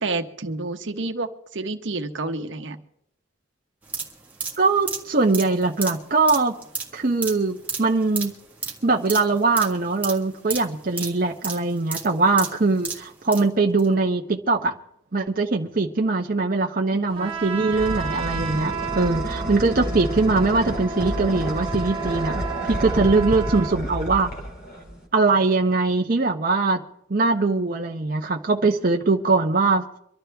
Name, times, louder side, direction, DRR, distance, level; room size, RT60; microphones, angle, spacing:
voice 1, 0.0-2.8 16.9-17.4 23.0-23.2, right 3 dB, 70° right, 7 dB, 1.1 m, -30 dB
sound 1, 3.8-13.5 13.8-13.9, right 4 dB, 10° right, 1.6 m, -33 dB
voice 2, 4.6-6.6 6.9-8.3 8.8-14.7 15.1-22.4 22.7-24.3 25.1-26.8 27.1-29.8, right 3 dB, 45° right, 1 dB, 0.8 m, -21 dB
sound 2, 17.1-25.1, equal, 50° left, 2.6 m, -30 dB
Trumpet, 17.1-23.8, right 6 dB, 30° right, 1.4 m, -32 dB
25.0 x 12.0 x 3.4 m, 0.75 s
head